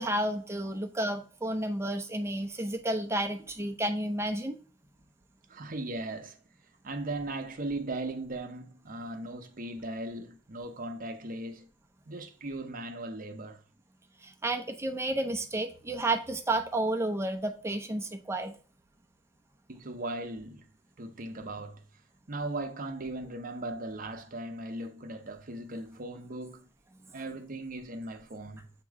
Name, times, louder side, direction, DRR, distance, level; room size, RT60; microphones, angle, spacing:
voice 1, 0.0-4.6 14.2-18.6, right 1 dB, 15° right, 0.7 m, -31 dB
voice 2, 5.5-6.4 6.8-11.7 12.1-13.6 19.7-20.7 21.0-21.9 22.3-26.7 27.1-28.7, right 2 dB, 45° right, 0.8 m, -38 dB
7.3 x 3.0 x 4.6 m
head